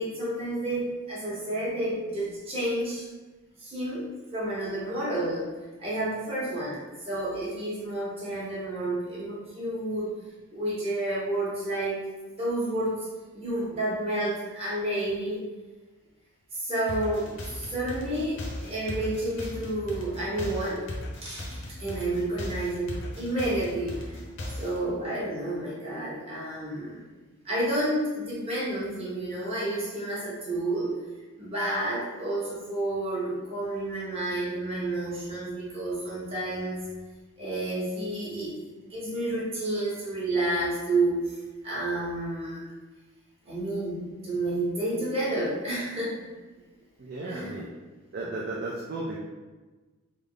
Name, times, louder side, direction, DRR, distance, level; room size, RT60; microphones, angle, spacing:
voice 1, 0.0-3.1 3.6-5.5 5.8-10.1 10.5-12.1 12.4-13.1 13.3-15.4 16.5-20.9 21.2-24.2 24.5-27.0 27.4-31.0 31.4-36.8 37.4-38.6 38.8-41.4 41.6-42.6 43.4-46.3 47.2-47.6, right 1 dB, 25° right, -8 dB, 1.1 m, -30 dB
sound 1, 16.9-24.8, left 1 dB, 55° left, 0.6 m, -37 dB
voice 2, 47.0-47.7 48.1-49.2, right 2 dB, 45° right, -4 dB, 0.4 m, -34 dB
3.4 x 2.0 x 3.7 m, 1.3 s
head